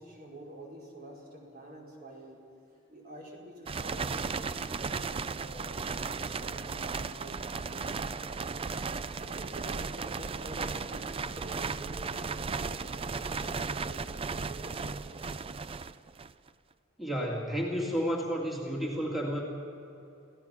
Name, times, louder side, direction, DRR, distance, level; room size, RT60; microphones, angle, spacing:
voice 1, 0.0-2.4 2.9-8.5 9.2-15.3, right 1 dB, 50° right, -2 dB, 5.1 m, -48 dB
sound 1, 3.7-16.5, right 4 dB, 30° right, 0.4 m, -35 dB
voice 2, 17.0-19.4, equal, ahead, -3 dB, 2.3 m, -31 dB
29.0 x 16.0 x 6.0 m, 2.8 s
head